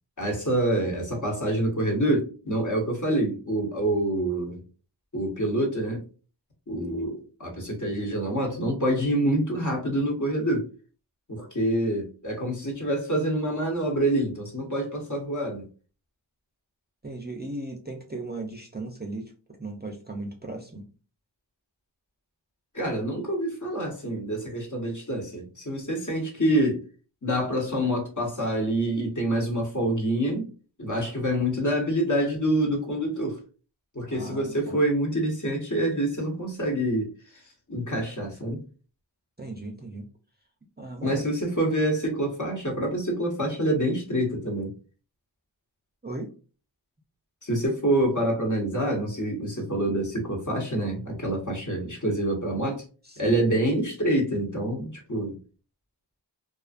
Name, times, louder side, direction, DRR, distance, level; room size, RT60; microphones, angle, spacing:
voice 1, 0.2-4.6 5.1-6.0 6.7-10.7 11.3-15.6 22.7-26.8 27.2-30.5 30.8-33.4 33.9-37.1 37.7-38.6 41.0-44.7 47.4-52.8 53.2-55.4, right 1 dB, 40° left, 0 dB, 1.1 m, -26 dB
voice 2, 17.0-19.3 19.6-20.9 34.1-34.8 39.4-40.1 40.8-41.2 46.0-46.3 53.0-53.4, right 2 dB, 20° right, 2 dB, 0.5 m, -37 dB
2.4 x 2.3 x 2.4 m, 0.36 s
wide cardioid pair, 40°, 46 cm